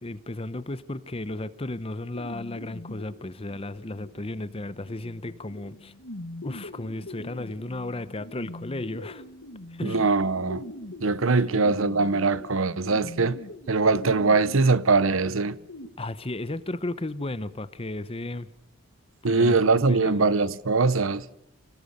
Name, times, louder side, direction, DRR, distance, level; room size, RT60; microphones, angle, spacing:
voice 1, 0.0-5.9 6.4-9.2 9.7-10.1 11.5-11.7 16.0-18.5 19.2-20.3, left 2 dB, 25° left, 0.9 m, -34 dB
sound 1, 2.1-15.9, left 1 dB, 80° left, 2.0 m, -43 dB
voice 2, 9.8-10.6 11.0-13.4 13.7-15.6 19.2-21.2, right 3 dB, 70° right, 0.9 m, -22 dB
27.0 x 18.5 x 6.7 m
head